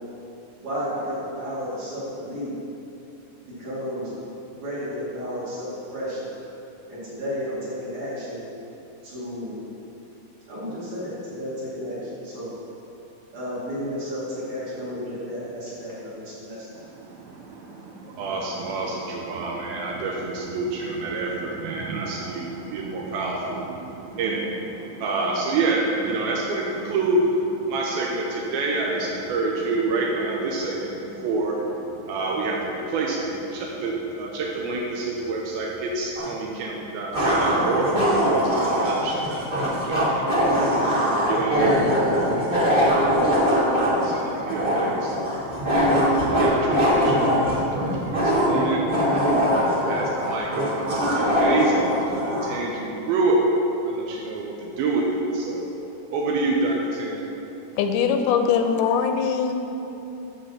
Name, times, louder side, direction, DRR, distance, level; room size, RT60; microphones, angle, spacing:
voice 1, 0.6-2.5 3.4-4.1 4.5-6.3 6.9-8.5 9.0-9.5 10.5-12.5 13.3-16.7, equal, 55° right, -11 dB, 3.7 m, -32 dB
voice 2, 16.7-40.7 41.3-41.9 42.2-42.9 43.3-43.7 44.0-45.2 45.7-48.8 49.3-53.4 53.8-55.7 56.1-57.2, right 3 dB, 80° right, -2 dB, 2.7 m, -28 dB
sound 1, 36.2-36.3 37.1-52.5, equal, 35° right, 0.8 m, -22 dB
voice 3, 57.8-59.5, left 7 dB, 85° left, 6 dB, 2.6 m, -21 dB
13.0 x 4.3 x 7.3 m, 2.9 s
omnidirectional pair, 4.4 m